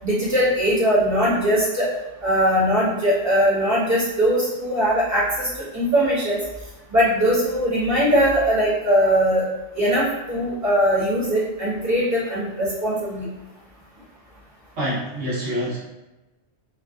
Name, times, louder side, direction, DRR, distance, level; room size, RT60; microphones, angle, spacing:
voice 1, 0.0-1.9 2.2-6.4 6.9-9.5 9.7-13.3, equal, 15° right, -10 dB, 1.0 m, -20 dB
voice 2, 14.8-15.8, equal, 70° right, -6 dB, 0.9 m, -26 dB
2.6 x 2.1 x 2.3 m, 1.1 s
omnidirectional pair, 1.2 m